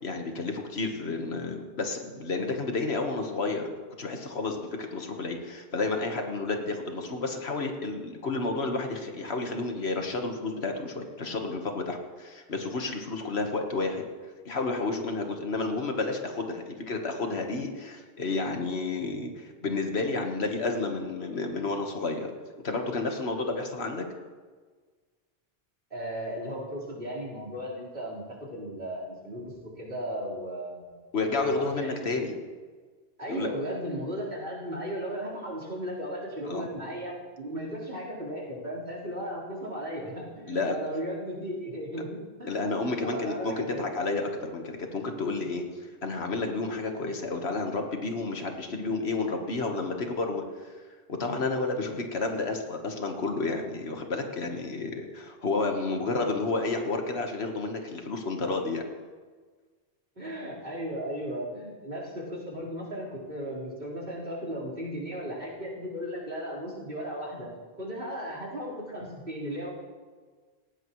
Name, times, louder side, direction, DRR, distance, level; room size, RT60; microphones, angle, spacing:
voice 1, 0.0-3.7 4.0-14.0 14.5-22.3 22.6-24.0 31.1-32.3 33.3-33.5 36.5-36.6 40.5-40.8 42.5-45.7 46.0-50.7 51.2-58.8, left 3 dB, 75° left, 3 dB, 1.7 m, -31 dB
voice 2, 25.9-31.0 31.4-32.0 33.2-44.0 60.2-67.5 67.8-69.7, equal, 55° right, -7 dB, 4.6 m, -36 dB
19.0 x 15.5 x 3.1 m, 1.5 s
omnidirectional pair, 1.1 m